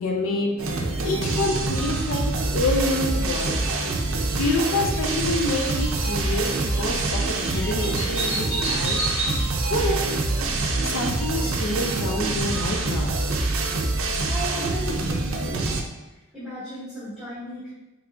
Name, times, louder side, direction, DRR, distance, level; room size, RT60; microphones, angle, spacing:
voice 1, 0.0-3.6 4.4-9.1 9.7-10.1 10.8-13.2, left 2 dB, 70° left, 2 dB, 0.5 m, -27 dB
sound 1, 0.6-15.8, right 2 dB, 80° right, 0.5 m, -25 dB
sound 2, 3.2-10.5, right 1 dB, 20° left, 1.3 m, -34 dB
voice 2, 14.0-15.8 16.3-17.7, equal, ahead, -13 dB, 1.0 m, -36 dB
3.7 x 3.3 x 2.3 m, 1.0 s
head